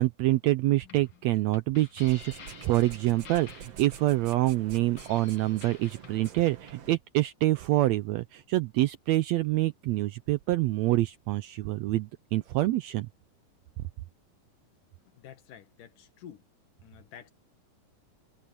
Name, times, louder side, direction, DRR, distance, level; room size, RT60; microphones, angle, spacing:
voice 1, 0.0-13.1, right 16 dB, 80° right, 1.6 m, -26 dB
sound 1, 0.8-6.7, left 7 dB, 50° left, 1.9 m, -51 dB
sound 2, 2.0-7.0, right 7 dB, 55° right, 2.5 m, -47 dB
voice 2, 15.1-16.4 16.8-17.3, left 9 dB, 85° left, 3.1 m, -49 dB
omnidirectional pair, 3.7 m